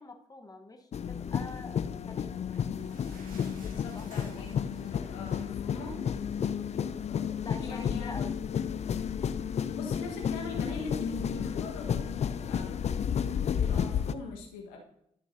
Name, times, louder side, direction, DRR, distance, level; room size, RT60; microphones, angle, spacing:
voice 1, 0.0-1.8 2.1-2.4 3.9-4.1 4.3-4.4 7.3-8.3, left 3 dB, 25° left, 4 dB, 1.2 m, -45 dB
sound 1, 0.9-14.1, left 8 dB, 50° left, 0.5 m, -32 dB
sound 2, 2.1-6.8 7.2-7.3 7.6-7.7 8.4-8.5, right 2 dB, 70° right, 1.9 m, -55 dB
voice 2, 3.5-4.5 4.8-6.0 7.0-8.1 9.7-12.8 13.5-14.8, left 3 dB, 85° left, 0 dB, 1.5 m, -42 dB
12.0 x 6.9 x 2.7 m, 0.73 s
hypercardioid pair, 45°, 15 cm